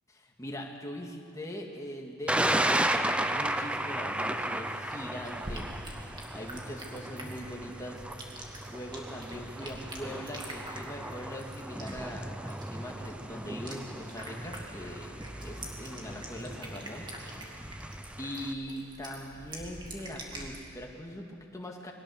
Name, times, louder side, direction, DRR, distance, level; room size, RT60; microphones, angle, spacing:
voice 1, 0.1-6.1 6.3-8.0 8.7-17.5 18.2-21.9, equal, 15° left, 0 dB, 1.9 m, -42 dB
Thunder, 2.3-18.5, right 1 dB, 5° right, 0.5 m, -35 dB
sound 1, 3.2-18.5 20.2-20.4 20.6-20.7, right 1 dB, 55° right, 4.8 m, -52 dB
sound 2, 4.7-20.6, right 1 dB, 20° right, 2.4 m, -46 dB
22.0 x 18.5 x 6.5 m, 2.4 s
head